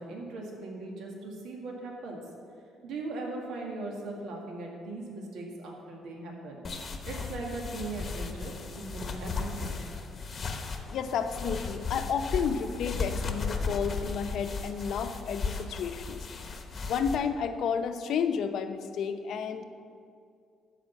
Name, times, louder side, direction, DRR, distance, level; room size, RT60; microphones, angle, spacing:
voice 1, 0.0-2.2 2.8-6.6 7.0-9.9, right 2 dB, 75° right, -1 dB, 1.9 m, -39 dB
sound 1, 6.6-17.2, left 4 dB, 35° left, 1.0 m, -36 dB
voice 2, 10.9-16.6 16.9-19.6, left 6 dB, 60° left, 8 dB, 0.7 m, -31 dB
13.0 x 5.0 x 7.3 m, 2.4 s
cardioid pair, 140°, 0 cm